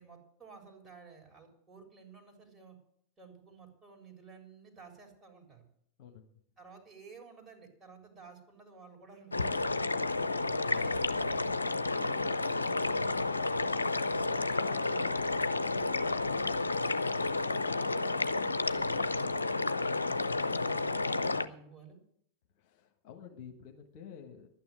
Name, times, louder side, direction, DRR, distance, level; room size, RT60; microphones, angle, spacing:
voice 1, 0.0-2.8 3.2-5.6 6.6-10.2 10.7-13.1 13.7-17.6 18.0-22.0, right 5 dB, 15° right, 0 dB, 3.8 m, -54 dB
voice 2, 6.0-6.3 10.6-10.9 22.6-24.5, left 8 dB, 45° left, 4 dB, 1.3 m, -50 dB
sound 1, 9.3-21.5, left 3 dB, 80° left, 0.5 m, -31 dB
11.5 x 9.4 x 7.7 m, 0.70 s
figure-of-eight pair, 90°, 0 cm